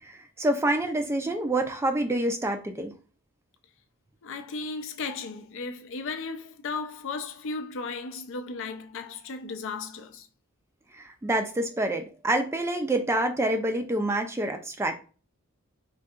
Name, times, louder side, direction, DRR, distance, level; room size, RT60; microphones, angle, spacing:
voice 1, 0.0-2.9 10.9-15.0, right 1 dB, 10° right, 0.3 m, -27 dB
voice 2, 4.2-10.3, left 4 dB, 60° left, 0.4 m, -35 dB
3.7 x 2.7 x 2.4 m
head